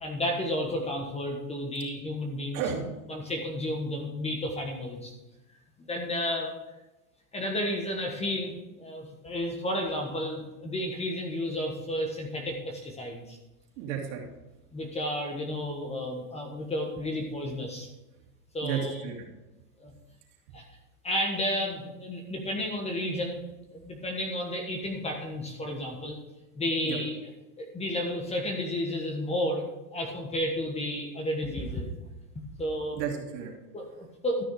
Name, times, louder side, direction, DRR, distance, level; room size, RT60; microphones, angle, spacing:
voice 1, 0.0-2.6 3.1-5.1 5.9-6.6 7.3-13.4 14.7-17.9 18.5-19.0 19.8-19.9 20.5-20.6 21.0-23.4 23.7-26.2 26.5-27.2 27.6-29.6 29.9-31.9 32.6-33.0 33.7-34.4, left 1 dB, 15° left, 2 dB, 1.4 m, -32 dB
voice 2, 2.5-2.8 13.8-14.2 18.6-19.3 26.8-27.0 32.9-33.5, right 8 dB, 50° right, 0 dB, 2.9 m, -32 dB
13.0 x 6.3 x 4.8 m, 1.0 s
hypercardioid pair, 125°, 46 cm